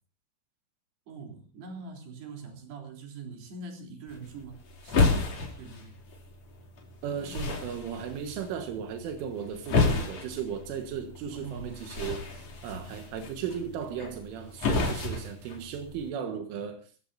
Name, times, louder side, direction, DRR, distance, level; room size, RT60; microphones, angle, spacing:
voice 1, 1.1-5.2 5.6-6.1 7.1-7.4 11.3-11.9, right 4 dB, 60° right, 2 dB, 5.4 m, -43 dB
sound 1, 4.1-16.1, left 3 dB, 40° left, 3.6 m, -32 dB
voice 2, 7.0-16.9, right 7 dB, 85° right, 5 dB, 4.0 m, -36 dB
24.0 x 15.5 x 2.7 m, 0.37 s
omnidirectional pair, 5.5 m